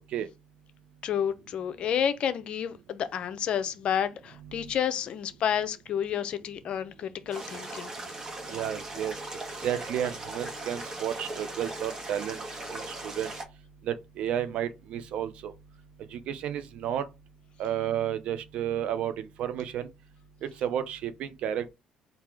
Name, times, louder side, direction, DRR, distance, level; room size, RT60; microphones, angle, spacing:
voice 1, 1.0-7.9, left 9 dB, 55° left, 0.6 m, -30 dB
sound 1, 7.3-13.4, right 2 dB, 30° right, 1.4 m, -39 dB
voice 2, 8.5-9.1 9.6-12.4 12.7-13.3 13.8-15.5 16.1-17.1 17.6-19.9 20.6-21.7, right 10 dB, 65° right, 0.6 m, -32 dB
3.9 x 2.8 x 4.7 m
cardioid pair, 90°, 2 cm